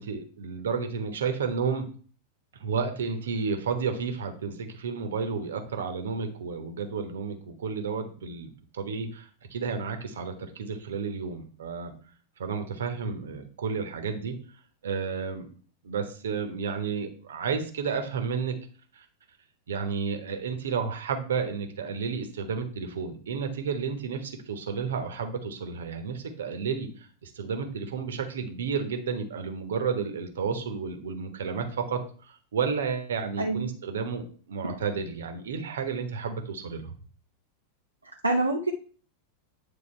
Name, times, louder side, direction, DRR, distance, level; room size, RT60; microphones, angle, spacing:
voice 1, 0.0-1.9 2.6-11.9 12.4-14.3 14.8-15.5 15.8-18.5 18.9-19.0 19.7-36.9, right 5 dB, 65° right, 6 dB, 1.1 m, -32 dB
voice 2, 33.4-33.7 34.6-34.7 38.2-38.7, right 2 dB, 80° right, 1 dB, 0.7 m, -26 dB
8.9 x 3.4 x 4.5 m, 0.42 s
figure-of-eight pair, 90°, 0 cm